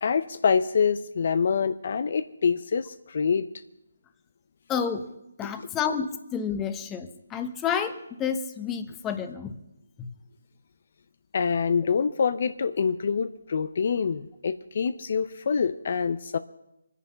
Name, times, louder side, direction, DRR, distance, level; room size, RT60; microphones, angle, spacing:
voice 1, 0.0-3.5 5.4-5.7 11.3-16.4, left 6 dB, 55° left, 13 dB, 0.6 m, -26 dB
voice 2, 4.7-5.1 5.4-9.5 10.0-10.1, left 7 dB, 15° left, 8 dB, 1.0 m, -30 dB
23.5 x 10.0 x 5.7 m, 0.92 s
figure-of-eight pair, 150°, 0 cm